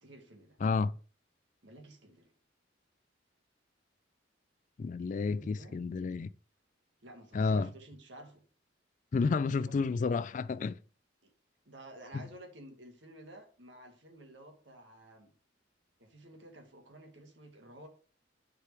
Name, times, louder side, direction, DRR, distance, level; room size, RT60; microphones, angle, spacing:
voice 1, 0.0-0.6 1.6-2.3 5.0-5.8 7.0-8.4 9.4-9.8 11.2-11.3 11.7-15.3 16.0-17.9, right 1 dB, 70° right, 1.9 m, -52 dB
voice 2, 0.6-0.9 4.8-6.3 7.3-7.7 9.1-10.8, left 4 dB, 40° left, 0.3 m, -30 dB
9.7 x 4.8 x 3.4 m
head